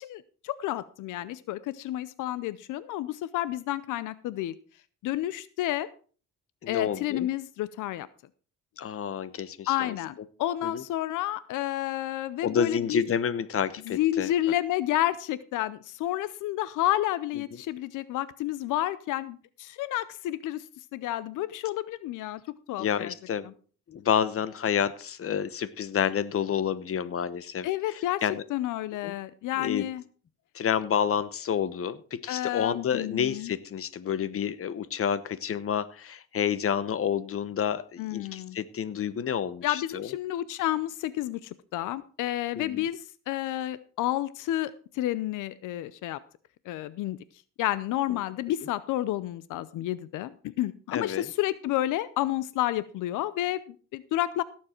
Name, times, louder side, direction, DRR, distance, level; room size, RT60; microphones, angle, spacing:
voice 1, 0.0-4.5 5.0-5.9 6.7-8.1 9.7-13.0 13.9-20.6 20.9-22.4 22.7-23.1 23.4-23.5 27.6-28.2 28.5-30.0 32.3-33.5 38.0-38.6 39.6-46.2 46.7-47.2 47.6-54.4, left 14 dB, 90° left, 17 dB, 0.6 m, -30 dB
voice 2, 6.6-7.3 8.8-9.7 10.6-10.8 12.4-14.3 22.8-23.5 23.9-27.7 28.2-28.4 29.0-29.1 29.6-29.8 30.5-40.1 42.6-42.9 50.9-51.3, left 8 dB, 50° left, 16 dB, 1.0 m, -29 dB
17.0 x 7.4 x 4.4 m, 0.40 s
cardioid pair, 90°, 30 cm